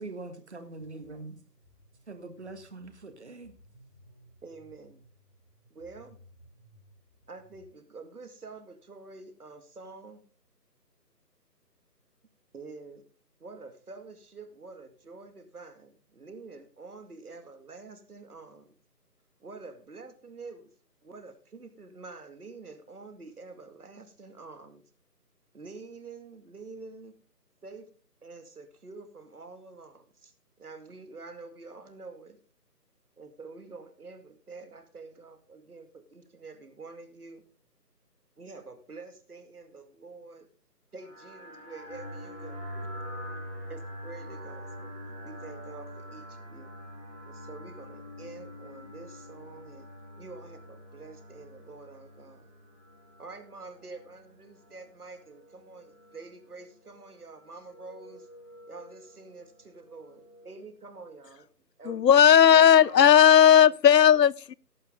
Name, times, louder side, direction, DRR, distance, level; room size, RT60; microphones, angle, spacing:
voice 1, 0.0-1.4 2.1-3.6, right 3 dB, 45° right, 1.7 m, -43 dB
sound 1, 0.8-7.6, equal, 20° right, 3.7 m, -59 dB
voice 2, 4.4-5.0 5.7-6.2 7.3-10.2 12.5-13.0 13.4-18.7 19.4-20.7 21.0-24.8 25.5-27.2 27.6-27.9 28.2-30.3 30.6-32.4 33.2-37.4 38.4-40.5 40.9-42.6 43.7-44.9 45.2-46.7 47.2-49.9 50.2-52.5 53.2-58.3 58.7-61.5 61.8-62.1 62.5-63.1 63.4-63.6, right 3 dB, 65° right, 2.3 m, -47 dB
sound 2, 41.0-60.7, equal, 25° left, 4.7 m, -45 dB
voice 3, 61.9-64.5, left 9 dB, 80° left, 0.6 m, -16 dB
18.0 x 6.5 x 3.8 m
figure-of-eight pair, 170°, 49 cm